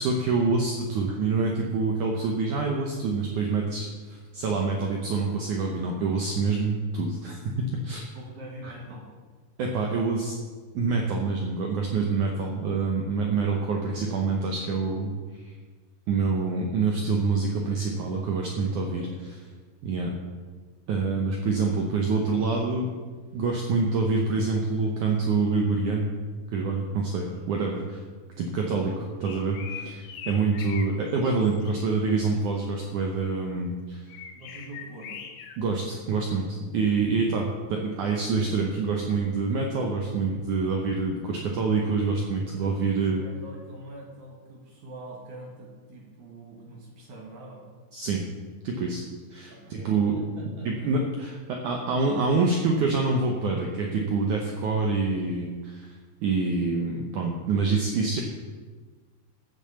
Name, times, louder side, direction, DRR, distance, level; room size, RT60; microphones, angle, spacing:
voice 1, 0.0-8.1 8.6-8.7 9.6-10.4 10.7-15.1 15.4-15.5 16.1-19.4 19.8-20.1 20.9-22.9 23.3-26.1 26.5-28.0 28.4-34.1 35.6-43.2 47.9-48.2 48.6-49.0 49.3-50.2 50.7-55.9 56.2-58.2, right 4 dB, 70° right, 1 dB, 1.9 m, -26 dB
voice 2, 8.1-9.1 18.9-19.2 27.2-28.0 34.3-35.2 42.5-47.6 49.5-50.9, right 1 dB, 50° right, -1 dB, 2.8 m, -44 dB
sound 1, 29.2-30.9 31.2-31.9 34.1-35.6, left 8 dB, 75° left, 3.0 m, -41 dB
14.5 x 7.2 x 7.0 m, 1.4 s
omnidirectional pair, 5.0 m